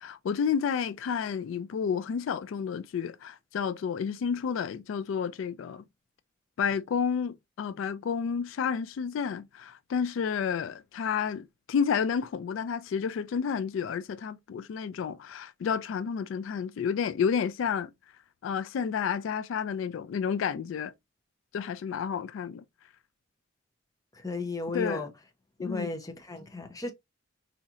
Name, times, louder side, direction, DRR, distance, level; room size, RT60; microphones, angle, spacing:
voice 1, 0.0-5.8 6.6-17.9 18.4-20.9 21.5-22.6 24.7-25.0 25.6-25.9, left 7 dB, 75° left, 0.3 m, -30 dB
voice 2, 24.1-25.1 25.6-26.9, left 3 dB, 20° left, 0.7 m, -34 dB
4.2 x 2.8 x 2.4 m
head